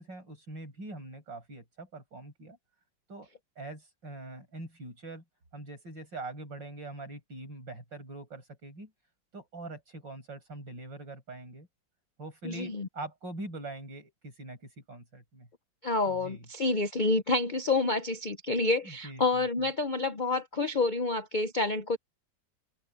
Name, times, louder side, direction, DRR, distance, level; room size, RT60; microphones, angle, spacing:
voice 1, 0.0-2.6 3.1-3.3 3.6-5.2 5.5-8.9 9.3-11.7 12.2-15.5 16.1-16.5 18.8-19.4, right 2 dB, 70° right, 7.9 m, -43 dB
voice 2, 12.4-12.9 15.8-22.0, left 3 dB, 55° left, 0.5 m, -28 dB
open air
omnidirectional pair, 2.1 m